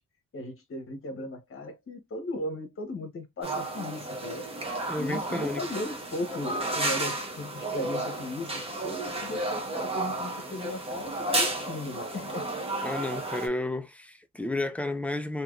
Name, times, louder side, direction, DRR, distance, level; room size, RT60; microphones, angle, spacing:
voice 1, 0.3-4.5 5.0-12.5, left 2 dB, 45° left, 1.0 m, -37 dB
sound 1, 3.4-13.5, right 2 dB, 20° right, 1.0 m, -32 dB
voice 2, 4.9-5.7 12.8-15.4, left 2 dB, 5° left, 0.3 m, -32 dB
3.4 x 2.8 x 2.3 m
cardioid pair, 135°, 30 cm